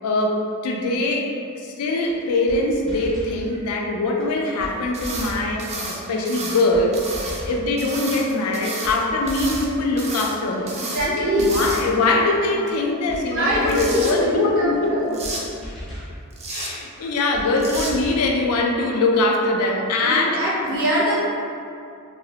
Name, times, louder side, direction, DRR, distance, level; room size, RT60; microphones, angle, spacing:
voice 1, 0.0-15.1 16.5-20.4 20.7-20.8, left 2 dB, 85° left, 1 dB, 0.4 m, -22 dB
sound 1, 2.1-2.2 2.5-2.6 2.9-3.4 4.2-4.3 4.6-4.7 5.0-5.5 6.3-6.4 6.7-6.9 7.1-7.6 8.4-8.5 8.8-9.0 9.2-9.7 10.6-10.7 11.0-11.1 11.4-11.9 12.7-12.8 13.1-13.2 13.5-14.0 14.8-14.9 15.2-15.4 15.6-16.1 16.9-17.0 17.3-17.5 17.7-18.2, equal, ahead, 0.7 m, -36 dB
sound 2, 4.9-5.3 5.6-6.6 6.9-7.4 7.8-9.0 9.3-9.7 10.0-10.3 10.7-11.1 11.4-12.1 13.4-14.1 15.1-15.4 16.3-16.7 17.6-17.9, right 3 dB, 30° right, 0.3 m, -32 dB
voice 2, 10.8-11.5 13.2-15.2 15.9-16.1 16.9-17.1 20.0-21.2, equal, 65° right, -7 dB, 0.8 m, -23 dB
3.1 x 2.0 x 2.8 m, 2.5 s
head